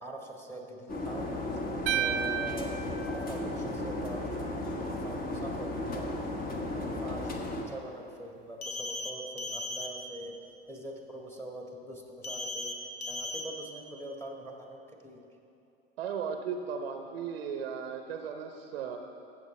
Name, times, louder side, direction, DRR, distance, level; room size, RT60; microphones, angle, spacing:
voice 1, 0.0-10.4 10.7-15.2, right 1 dB, 10° left, 0 dB, 1.6 m, -44 dB
sound 1, 0.9-7.6, left 1 dB, 30° left, 1.3 m, -35 dB
sound 2, 1.9-4.1, right 10 dB, 40° right, 0.5 m, -33 dB
sound 3, 8.6-9.1 9.4-9.9 12.2-12.7 13.0-13.4, left 2 dB, 85° left, 1.1 m, -36 dB
voice 2, 16.0-19.0, right 6 dB, 75° right, 5 dB, 0.7 m, -36 dB
15.5 x 7.4 x 3.2 m, 2.8 s
hypercardioid pair, 80°, 30 cm